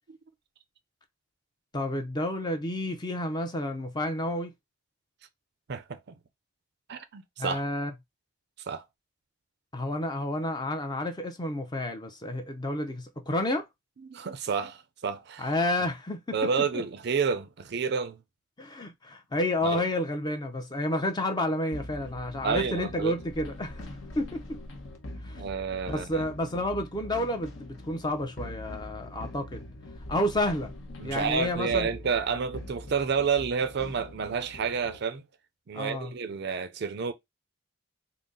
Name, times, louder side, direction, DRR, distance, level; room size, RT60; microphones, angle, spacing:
voice 1, 1.7-4.5 7.4-7.9 9.7-13.7 15.4-16.8 18.6-23.9 24.2-24.6 25.2-25.4 25.9-29.6 30.1-30.7 31.0-31.9 35.7-36.1, left 1 dB, 20° left, 0.5 m, -30 dB
voice 2, 5.7-6.2 6.9-7.6 8.7-8.8 14.0-15.5 16.3-18.2 19.6-19.8 22.4-23.1 25.4-26.3 31.0-35.2 35.7-37.1, right 5 dB, 50° right, 0.4 m, -30 dB
sound 1, 21.7-35.0, left 1 dB, 65° left, 0.9 m, -43 dB
3.9 x 2.0 x 3.7 m
head